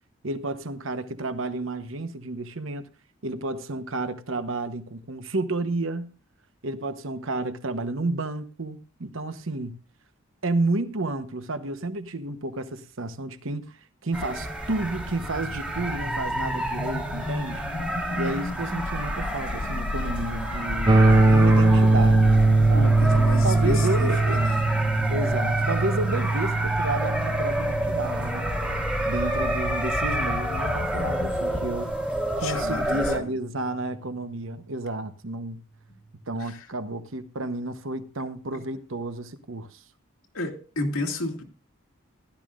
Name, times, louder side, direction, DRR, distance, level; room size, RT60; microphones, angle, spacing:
voice 1, 0.2-2.9 3.2-6.2 6.6-9.7 10.4-17.6 18.1-20.9 21.3-22.9 23.4-24.6 25.1-28.5 29.0-31.9 32.4-35.6 36.3-39.8, right 2 dB, 70° right, 1.0 m, -31 dB
sound 1, 14.1-33.2, right 1 dB, 5° right, 1.4 m, -30 dB
sound 2, 14.8-31.4, left 2 dB, 45° left, 0.5 m, -35 dB
sound 3, 20.9-30.8, right 2 dB, 20° right, 0.7 m, -22 dB
voice 2, 22.7-24.6 29.0-29.1 32.4-33.3 36.4-36.7 38.5-38.6 40.3-41.4, left 2 dB, 90° left, 2.5 m, -32 dB
16.0 x 12.0 x 2.5 m
head